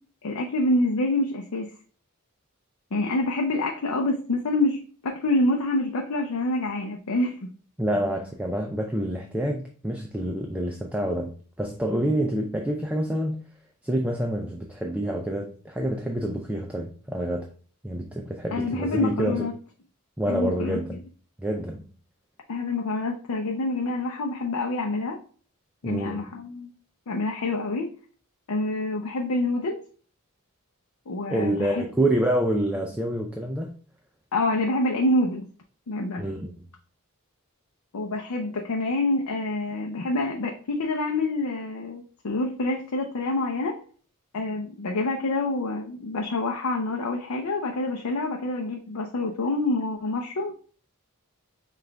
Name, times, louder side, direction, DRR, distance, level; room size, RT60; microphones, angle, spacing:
voice 1, 0.2-1.7 2.9-7.5 18.5-19.5 20.3-20.8 22.5-25.2 25.8-26.7 27.1-27.9 28.5-29.8 31.1-31.8 34.3-35.4 35.9-36.3 37.9-43.8 44.3-50.5, left 2 dB, 85° left, 0.6 m, -27 dB
voice 2, 7.8-13.4 13.8-17.5 17.8-19.5 20.2-21.0 21.4-21.9 25.8-26.4 31.3-33.7 36.2-36.5, right 1 dB, 5° right, 0.4 m, -27 dB
5.7 x 2.5 x 3.3 m
head